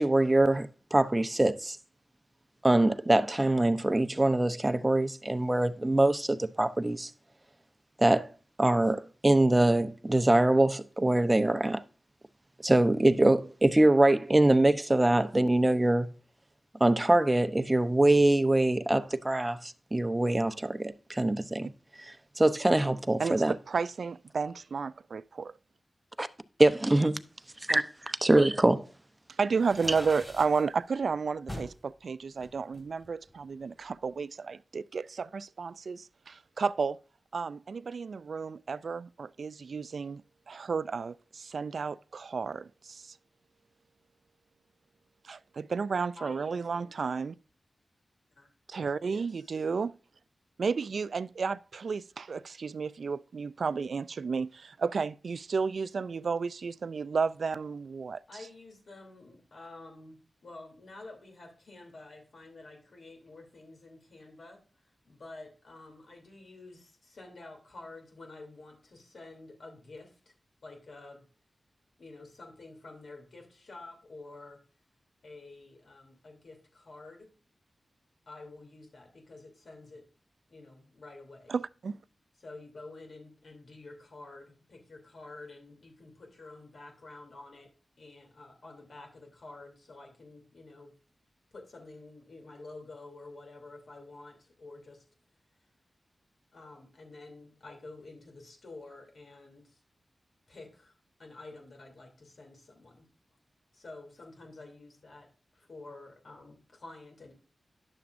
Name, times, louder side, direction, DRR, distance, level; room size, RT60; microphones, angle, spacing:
voice 1, 0.0-1.8 2.6-7.1 8.0-8.3 8.6-11.8 12.6-16.1 16.8-21.7 22.0-23.5 26.2-26.3 26.6-27.2 27.7-28.9, right 1 dB, 25° right, 0.7 m, -24 dB
voice 2, 23.2-25.5 27.0-27.1 27.7-27.8 29.4-37.0 37.3-43.2 45.2-47.3 48.7-49.9 50.6-58.2 81.5-82.0, right 5 dB, 75° right, 0.3 m, -32 dB
sound 1, 29.5-30.6 31.5-31.8 32.4-33.5, equal, 10° left, 2.5 m, -43 dB
voice 3, 46.1-47.0 48.4-48.5 49.0-49.6 58.3-70.3 70.6-71.2 72.0-74.6 75.2-77.3 78.3-80.0 80.5-81.5 82.4-87.7 88.0-90.9 91.5-95.0 96.5-99.8 100.5-103.1 103.7-107.3, left 2 dB, 75° left, 2.9 m, -49 dB
10.5 x 6.9 x 2.5 m
cardioid pair, 45°, 0 cm